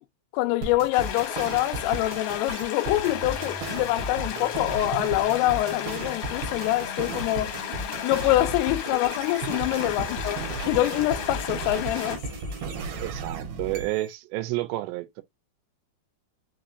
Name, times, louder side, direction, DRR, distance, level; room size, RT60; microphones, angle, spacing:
voice 1, 0.3-7.6 8.0-12.2, left 16 dB, 85° left, 2.4 m, -25 dB
sound 1, 0.6-14.1, right 3 dB, 65° right, 2.8 m, -35 dB
sound 2, 0.9-12.2, left 8 dB, 65° left, 1.8 m, -34 dB
sound 3, 2.9-12.9, left 3 dB, 45° left, 0.8 m, -45 dB
voice 2, 13.0-15.2, right 18 dB, 85° right, 2.9 m, -30 dB
6.4 x 3.1 x 2.5 m
omnidirectional pair, 4.9 m